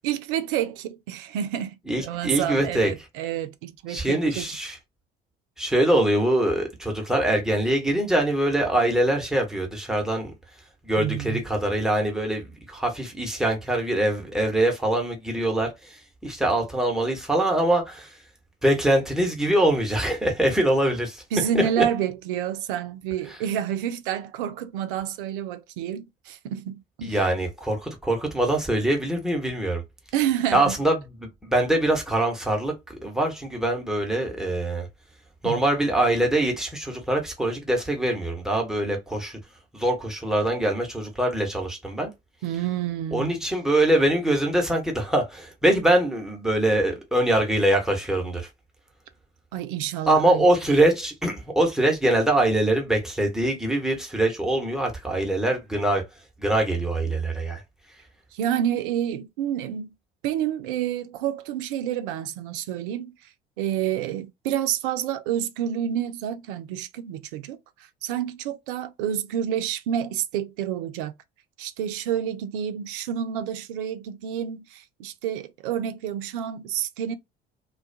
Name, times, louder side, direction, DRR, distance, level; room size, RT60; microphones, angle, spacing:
voice 1, 0.0-4.5 11.0-11.4 21.3-27.2 30.1-30.7 35.4-35.6 42.4-43.4 49.5-50.4 58.3-59.9 60.2-63.1 63.6-67.6 68.0-71.1 71.6-77.2, right 10 dB, 65° right, 0.5 m, -29 dB
voice 2, 1.9-2.9 3.9-4.8 5.6-10.3 10.8-18.1 18.6-21.2 21.5-21.8 23.3-23.4 27.0-29.8 30.5-34.9 35.4-39.4 39.7-42.1 43.1-48.5 50.1-56.0 56.4-57.6, right 1 dB, ahead, 0.9 m, -23 dB
2.2 x 2.2 x 2.6 m
figure-of-eight pair, 60°, 29 cm